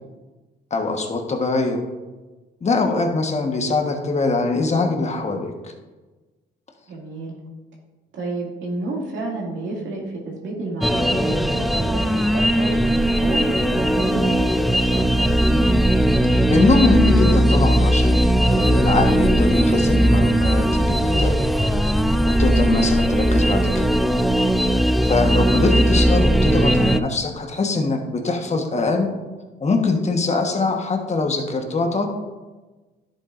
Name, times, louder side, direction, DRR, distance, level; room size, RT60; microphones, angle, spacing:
voice 1, 0.7-1.9 2.6-5.7 16.5-21.3 22.3-23.9 25.0-29.1 29.6-32.1, left 3 dB, 35° left, 3 dB, 1.3 m, -22 dB
voice 2, 6.9-7.4 8.1-12.7 13.2-15.4, right 2 dB, 70° right, -3 dB, 2.3 m, -30 dB
sound 1, 10.8-27.0, equal, ahead, 0.4 m, -18 dB
11.0 x 7.4 x 2.6 m, 1.2 s
cardioid pair, 90°, 20 cm